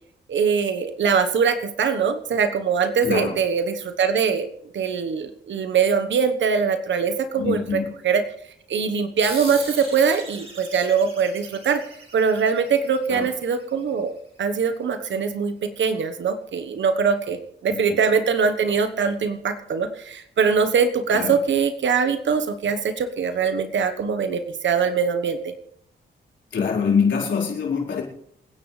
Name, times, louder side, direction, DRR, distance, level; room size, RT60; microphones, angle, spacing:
voice 1, 0.3-4.5 4.7-7.6 8.0-8.2 8.7-11.8 12.1-14.1 14.4-25.5, right 6 dB, 75° right, 8 dB, 1.2 m, -22 dB
voice 2, 3.0-3.4 7.4-7.9 13.1-13.3 17.7-18.0 21.1-21.4 26.5-28.0, left 6 dB, 80° left, -3 dB, 4.6 m, -24 dB
sound 1, 9.2-14.2, right 2 dB, 30° right, 5.0 m, -40 dB
27.5 x 10.0 x 3.3 m, 0.71 s
cardioid pair, 90°, 19 cm